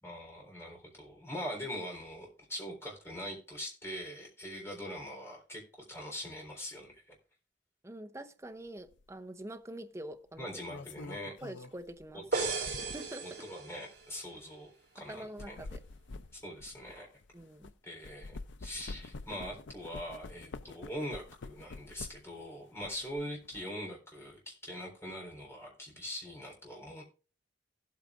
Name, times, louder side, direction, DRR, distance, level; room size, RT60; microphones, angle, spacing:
voice 1, 0.0-7.2 10.4-11.3 12.1-12.7 13.2-15.6 16.3-17.1 17.8-27.0, equal, 15° left, 3.9 m, -42 dB
voice 2, 7.8-10.5 11.4-12.2 12.9-13.5 15.0-15.8 17.3-17.7, right 1 dB, 15° right, 0.8 m, -45 dB
sound 1, 8.9-9.1 10.4-13.2 13.9-14.1 15.1-17.7 18.0-22.4 22.8-23.6, left 3 dB, 85° left, 0.6 m, -47 dB
sound 2, 12.3-14.1, right 3 dB, 65° right, 3.0 m, -35 dB
16.5 x 8.5 x 2.5 m
head